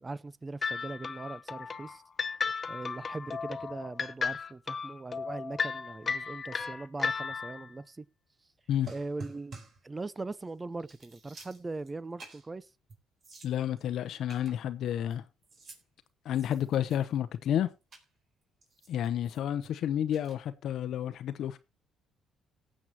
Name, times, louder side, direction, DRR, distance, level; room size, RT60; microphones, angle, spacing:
voice 1, 0.0-2.0 2.7-8.1 8.9-9.6 9.8-12.7, right 3 dB, 20° right, 0.7 m, -40 dB
sound 1, 0.6-7.7, left 5 dB, 35° left, 0.8 m, -35 dB
sound 2, 8.8-9.9 10.4-10.5 10.8-11.9 12.2-12.5 12.9-13.0 13.2-13.9 14.3-15.1 15.4-15.8 16.3-17.2 17.9-18.1 18.6-19.7 20.1-20.4, right 3 dB, 50° right, 4.0 m, -49 dB
voice 2, 13.4-15.2 16.2-17.7 18.9-21.6, left 10 dB, 65° left, 0.8 m, -30 dB
18.0 x 7.5 x 2.9 m
supercardioid pair, 80°, 0 cm